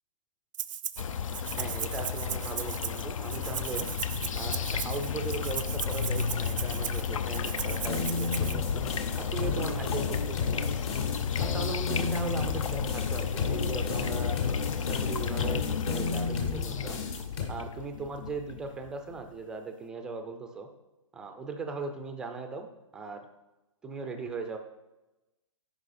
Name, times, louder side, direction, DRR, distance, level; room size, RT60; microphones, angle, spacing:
Rattle (instrument), 0.5-1.0 1.3-8.5, right 10 dB, 75° right, 0.4 m, -37 dB
sound 1, 1.0-19.1, left 7 dB, 80° left, 0.6 m, -32 dB
voice 1, 1.6-3.9 4.3-8.8 9.2-10.7 11.4-14.4 14.8-17.0 17.5-20.7 21.1-22.7 22.9-23.2 23.8-24.6, right 4 dB, 5° right, 5 dB, 0.3 m, -38 dB
sound 2, 7.7-17.4, left 4 dB, 50° left, 1.6 m, -33 dB
10.5 x 4.9 x 4.2 m, 1.0 s
hypercardioid pair, 160°, 17 cm